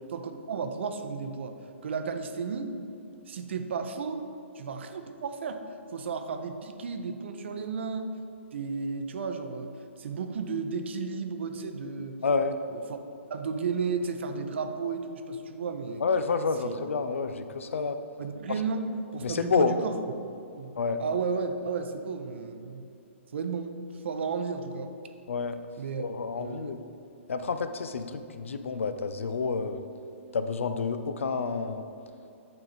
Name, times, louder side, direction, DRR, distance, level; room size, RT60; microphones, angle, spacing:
voice 1, 0.1-2.8 3.3-4.3 4.5-5.6 5.9-8.1 8.5-9.7 10.0-12.2 12.7-13.0 13.3-16.0 16.6-16.8 18.2-19.9 20.6-22.9 23.3-24.9 25.8-26.0 26.3-26.8, right 5 dB, 60° right, 7 dB, 0.6 m, -33 dB
voice 2, 12.2-12.6 16.0-18.0 19.2-19.8 20.8-21.0 25.3-25.6 26.0-26.8 27.3-29.8 30.3-31.8, left 4 dB, 70° left, 9 dB, 0.4 m, -29 dB
8.7 x 3.6 x 4.1 m, 2.6 s
figure-of-eight pair, 125°, 7 cm